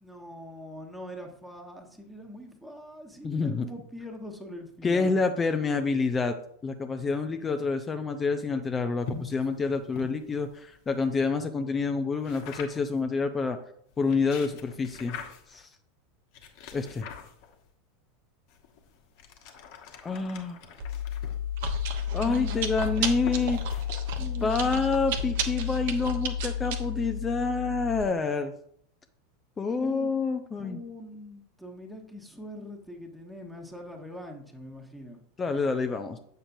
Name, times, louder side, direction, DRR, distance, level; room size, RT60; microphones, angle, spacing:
voice 1, 0.0-5.3 22.2-22.7 23.0-23.1 24.2-24.8 25.8-25.9 29.8-30.1 30.6-35.2, equal, ahead, 1 dB, 1.4 m, -43 dB
voice 2, 3.2-3.7 4.8-6.4 6.6-13.6 14.0-15.2 15.5-15.7 16.7-17.1 20.0-20.6 22.1-23.6 24.4-28.5 29.6-30.8 35.4-36.2, left 4 dB, 20° left, 7 dB, 0.6 m, -28 dB
sound 1, 9.0-11.2 12.2-13.0 13.9-15.6 16.3-17.7 18.5-24.9, left 4 dB, 55° left, 1.3 m, -45 dB
Chewing mastication, 20.8-28.0, left 4 dB, 60° right, 1.0 m, -31 dB
8.5 x 6.7 x 2.7 m, 0.66 s
figure-of-eight pair, 85°, 0 cm